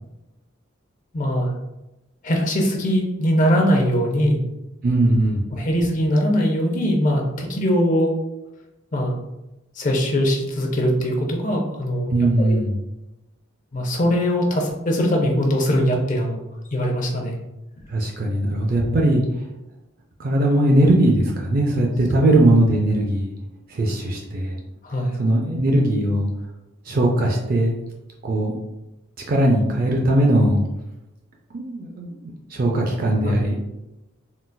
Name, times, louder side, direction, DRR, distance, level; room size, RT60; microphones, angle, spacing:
voice 1, 1.1-1.5 2.2-4.4 5.5-8.1 8.9-9.2 9.8-12.1 12.4-12.6 13.7-16.4 16.7-17.4 24.8-25.2 33.2-33.4, equal, 35° left, 1 dB, 0.5 m, -21 dB
voice 2, 4.8-5.4 12.1-12.8 17.9-19.2 20.2-23.3 23.7-24.6 25.2-26.3 26.9-27.7 28.2-28.5 29.3-30.6 31.5-33.6, right 1 dB, 45° right, -1 dB, 0.4 m, -19 dB
3.8 x 2.3 x 2.2 m, 0.96 s
head